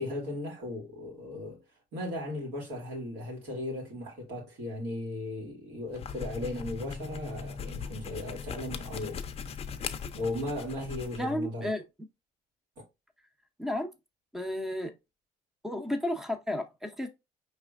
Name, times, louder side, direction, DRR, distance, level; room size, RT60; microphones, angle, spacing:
voice 1, 0.0-1.6 1.9-9.2 10.1-11.7 12.8-12.9, left 1 dB, 85° right, 2.3 m, -36 dB
sound 1, 5.9-11.3, left 6 dB, 35° left, 0.5 m, -39 dB
voice 2, 11.2-11.8 13.6-13.9 14.3-14.9 15.6-17.1, left 1 dB, ahead, 0.7 m, -32 dB
4.8 x 3.3 x 2.5 m
cardioid pair, 110°, 17 cm